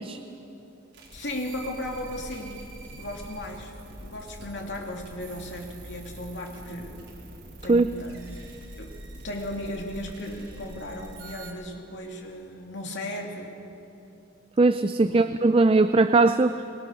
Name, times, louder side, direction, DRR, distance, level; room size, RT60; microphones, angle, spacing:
sound 1, 0.9-11.5, right 1 dB, 75° right, 4.3 m, -44 dB
voice 1, 1.1-2.6 2.9-3.7 4.0-7.1 7.6-8.4 8.8-13.6 15.0-15.3, left 1 dB, 65° left, 1 dB, 2.8 m, -36 dB
voice 2, 14.6-16.6, right 3 dB, 30° right, 11 dB, 0.4 m, -19 dB
24.0 x 20.5 x 6.4 m, 2.9 s
head